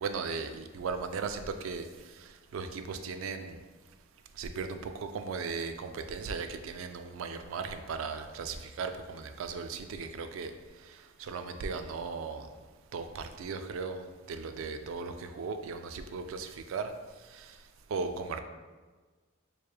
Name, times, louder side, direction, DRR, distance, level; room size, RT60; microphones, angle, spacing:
voice 1, 0.0-3.6 4.4-10.5 10.8-12.5 12.9-16.9 17.3-17.6 17.9-18.4, right 5 dB, 85° right, 8 dB, 0.3 m, -37 dB
4.5 x 3.1 x 2.2 m, 1.4 s
head